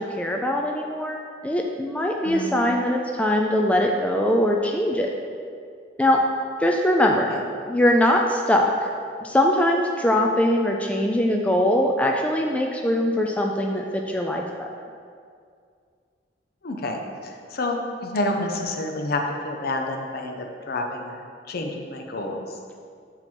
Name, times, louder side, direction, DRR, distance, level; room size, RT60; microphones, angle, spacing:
voice 1, 0.0-5.1 6.0-6.2 6.6-7.3 7.7-8.7 9.2-14.7, left 1 dB, 5° left, 1 dB, 0.3 m, -22 dB
voice 2, 16.6-22.6, left 2 dB, 55° left, 3 dB, 0.6 m, -29 dB
6.0 x 3.9 x 4.4 m, 2.2 s
head